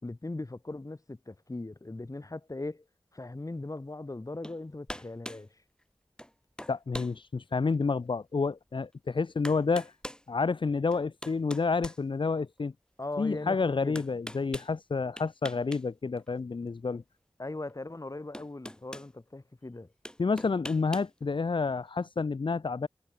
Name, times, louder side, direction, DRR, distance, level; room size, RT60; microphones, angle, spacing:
voice 1, 0.0-2.8 3.1-5.5 13.0-13.6 13.8-14.1 17.4-19.9, left 2 dB, 35° left, 2.2 m, -39 dB
sound 1, 4.4-4.6 4.9-5.5 6.2-6.3 6.6-7.2 7.7-7.8 8.9-9.0 9.4-10.2 10.9-12.6 13.9-14.7 15.2-15.8 16.1-16.3 17.7-17.8 18.3-19.1 20.0-21.1, equal, 10° left, 7.9 m, -42 dB
voice 2, 6.7-9.9 10.3-12.7 13.2-17.0 20.2-22.9, left 4 dB, 60° left, 0.8 m, -29 dB
cardioid pair, 45°, 10 cm